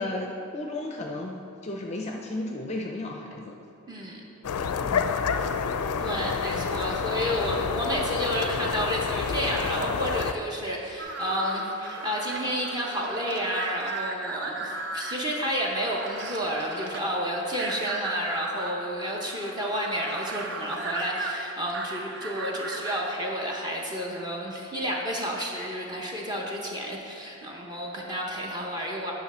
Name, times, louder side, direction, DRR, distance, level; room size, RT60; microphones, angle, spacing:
voice 1, 0.0-3.5 4.8-5.1, left 2 dB, 30° left, 1 dB, 0.4 m, -34 dB
voice 2, 3.9-4.2 6.0-29.1, equal, 20° right, -2 dB, 0.8 m, -31 dB
sound 1, 4.4-10.3, left 6 dB, 90° left, 0.4 m, -28 dB
sound 2, 11.0-23.2, right 2 dB, 50° right, 0.7 m, -36 dB
9.7 x 6.1 x 4.3 m, 2.7 s
head